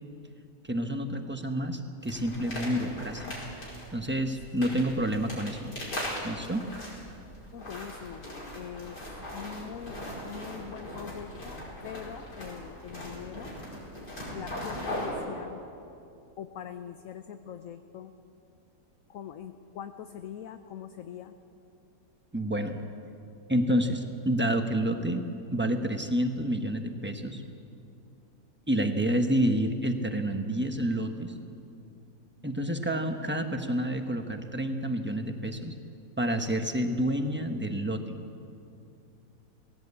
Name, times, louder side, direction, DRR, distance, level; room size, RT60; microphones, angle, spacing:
voice 1, 0.6-3.4 3.9-5.7 6.2-6.7 22.3-22.8 23.5-27.4 28.7-31.3 32.4-35.7 36.2-38.2, right 1 dB, 10° right, 5 dB, 0.9 m, -29 dB
sound 1, 2.0-15.1, left 1 dB, 90° left, 5.6 m, -39 dB
voice 2, 7.5-8.3 8.5-13.5 14.3-15.6 16.4-18.1 19.1-21.3, left 9 dB, 60° left, 8 dB, 1.0 m, -42 dB
18.5 x 16.5 x 8.4 m, 2.6 s
omnidirectional pair, 1.7 m